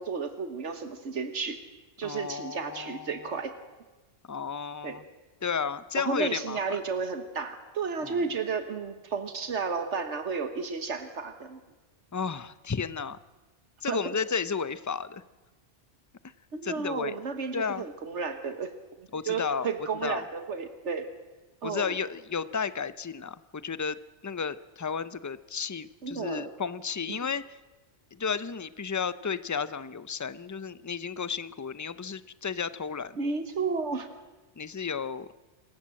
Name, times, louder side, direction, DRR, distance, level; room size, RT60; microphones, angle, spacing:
voice 1, 0.0-1.6 2.0-3.5 4.8-5.0 6.0-11.6 13.9-14.0 16.5-18.7 19.0-21.1 21.6-21.9 26.0-26.5 27.1-27.2 33.2-34.1, right 5 dB, 75° right, 8 dB, 1.6 m, -32 dB
voice 2, 2.0-3.3 4.3-5.0 5.4-6.8 8.0-8.3 12.1-13.2 13.8-15.2 16.6-17.1 17.5-17.9 19.1-19.7 20.0-20.2 21.6-24.0 24.2-27.6 28.1-33.1 34.6-35.3, left 6 dB, 25° left, 15 dB, 0.4 m, -33 dB
26.5 x 15.0 x 7.6 m, 1.2 s
omnidirectional pair, 1.2 m